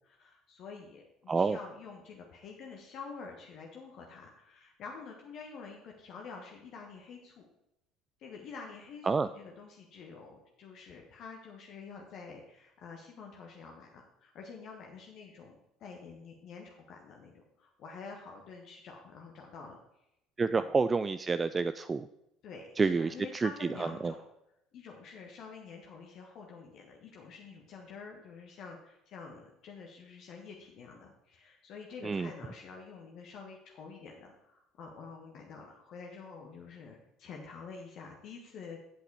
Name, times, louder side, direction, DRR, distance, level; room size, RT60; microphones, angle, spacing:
voice 1, 0.0-7.4 8.2-19.8 20.4-20.7 22.4-24.2 24.7-38.8, left 5 dB, 50° left, 0 dB, 1.3 m, -48 dB
voice 2, 20.4-22.1 22.8-24.1 32.0-32.3, right 4 dB, 25° right, 12 dB, 0.3 m, -29 dB
8.2 x 7.9 x 4.8 m, 0.84 s
figure-of-eight pair, 60°, 0 cm